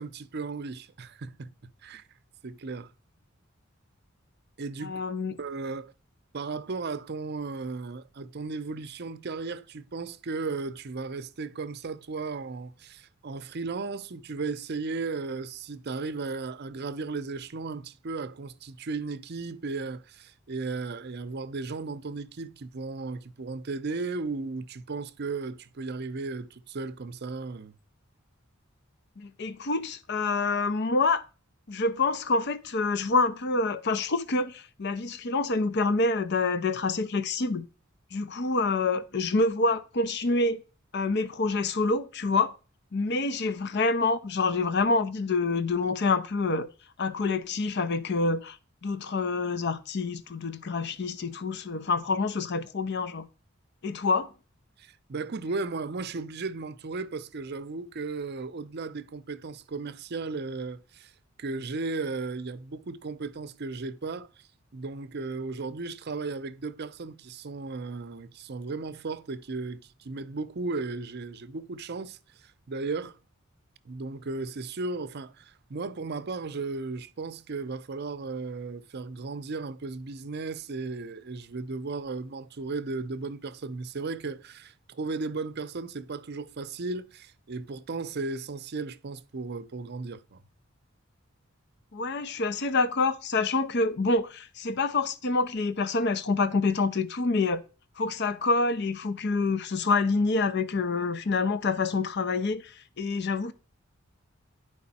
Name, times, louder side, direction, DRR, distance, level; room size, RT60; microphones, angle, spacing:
voice 1, 0.0-1.5 1.8-2.0 2.4-2.9 4.6-5.0 5.4-5.9 6.3-27.8 54.8-61.1 61.4-73.2 73.9-90.4, right 3 dB, 55° right, 0.6 m, -35 dB
voice 2, 4.8-5.4 29.2-31.2 31.7-37.6 38.1-40.6 40.9-42.5 42.9-46.7 47.0-53.3 53.8-54.3 91.9-97.6 98.0-103.5, left 3 dB, 55° left, 0.6 m, -27 dB
10.5 x 4.8 x 4.2 m
head